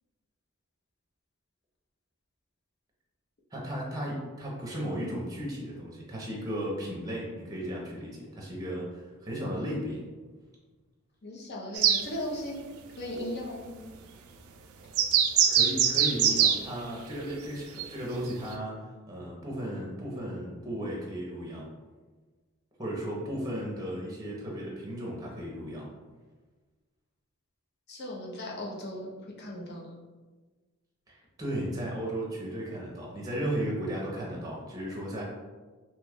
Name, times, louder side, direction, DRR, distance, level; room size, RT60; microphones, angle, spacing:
voice 1, 3.5-10.0 15.5-21.7 22.8-25.9 31.1-35.2, equal, 15° right, -3 dB, 0.7 m, -35 dB
voice 2, 11.2-12.6 13.0-13.7 27.9-29.1 29.4-29.9, left 1 dB, 50° left, -3 dB, 0.7 m, -37 dB
sound 1, 11.8-12.0 15.0-16.6 17.8-17.9 18.5-18.6, right 8 dB, 75° right, 0.3 m, -22 dB
3.0 x 2.3 x 3.4 m, 1.3 s
head